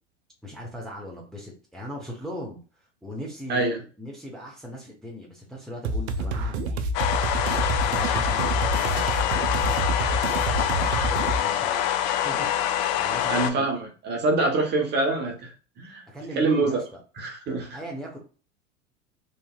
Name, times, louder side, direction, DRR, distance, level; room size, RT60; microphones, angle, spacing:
voice 1, 0.4-6.9 7.4-11.9 12.2-13.7 16.1-17.0 17.7-18.2, equal, ahead, -3 dB, 0.8 m, -39 dB
sound 1, 5.8-11.4, right 2 dB, 65° right, 0.5 m, -27 dB
sound 2, 6.9-13.5, left 11 dB, 35° left, 0.4 m, -25 dB
voice 2, 13.3-16.0 16.4-16.8 17.2-17.8, right 2 dB, 30° right, 1 dB, 1.0 m, -25 dB
3.0 x 2.6 x 2.3 m, 0.37 s
figure-of-eight pair, 90°, 36 cm